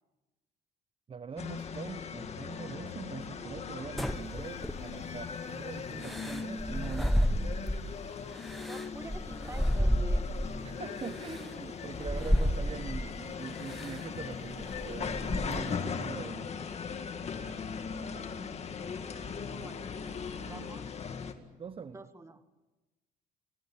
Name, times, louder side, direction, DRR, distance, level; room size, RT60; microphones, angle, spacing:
voice 1, 1.1-7.2 10.6-16.7 20.4-20.7 21.6-22.0, right 6 dB, 35° right, 12 dB, 0.9 m, -43 dB
sound 1, 1.4-21.3, left 6 dB, 40° left, 2.2 m, -39 dB
sound 2, 4.0-5.2 6.0-7.9 8.4-10.6 11.3-11.4 12.0-13.1 13.7-14.0 14.4-15.8, equal, ahead, 1.0 m, -31 dB
voice 2, 8.7-10.3 18.7-18.8 19.5-19.9 20.5-20.8 21.9-22.4, right 2 dB, 15° right, 9 dB, 1.9 m, -47 dB
28.5 x 21.0 x 7.3 m, 1.1 s
cardioid pair, 110°, 17 cm